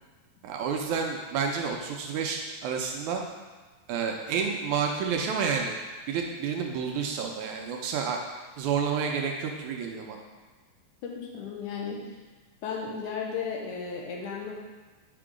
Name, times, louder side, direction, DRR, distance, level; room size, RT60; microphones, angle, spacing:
voice 1, 0.4-3.2 3.9-5.8 6.1-8.2 8.6-10.2, right 6 dB, 80° right, 2 dB, 2.0 m, -30 dB
voice 2, 11.0-12.1 12.6-14.5, left 6 dB, 75° left, -1 dB, 2.3 m, -34 dB
6.0 x 5.2 x 5.0 m, 1.3 s
omnidirectional pair, 3.7 m